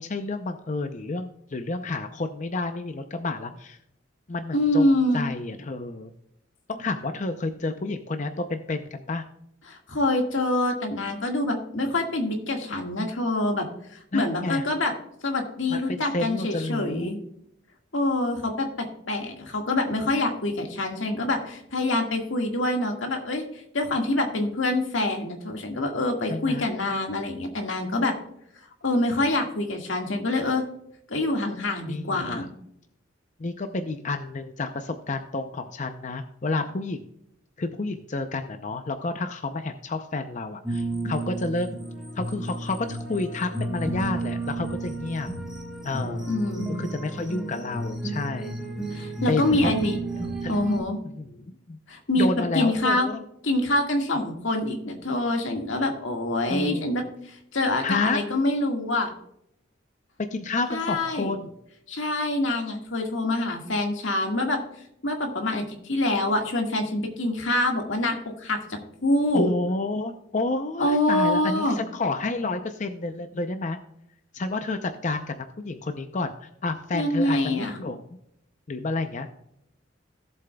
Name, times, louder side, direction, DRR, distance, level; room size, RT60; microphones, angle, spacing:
voice 1, 0.0-3.8 4.3-6.1 6.7-9.2 14.1-14.7 15.7-17.1 26.3-26.7 31.9-32.5 33.4-37.0 37.6-41.8 42.2-45.3 45.8-46.3 46.7-48.5 49.3-49.7 50.4-50.6 51.0-51.8 52.2-53.2 56.5-56.9 57.8-58.2 60.2-61.5 69.3-73.8 74.3-78.1 78.7-79.3, left 3 dB, 40° left, 7 dB, 0.6 m, -30 dB
voice 2, 4.5-5.3 9.7-13.7 13.9-14.9 15.2-17.2 17.9-28.2 28.8-30.6 31.1-32.5 46.3-46.9 48.9-50.0 50.5-51.0 51.9-52.3 52.5-53.1 53.4-59.1 60.7-61.3 61.9-64.6 65.0-69.5 70.8-71.8 76.9-77.8, left 1 dB, 85° left, 3 dB, 1.8 m, -25 dB
sound 1, 40.6-50.8, right 2 dB, 5° right, 1.4 m, -32 dB
17.0 x 7.5 x 2.3 m, 0.76 s
head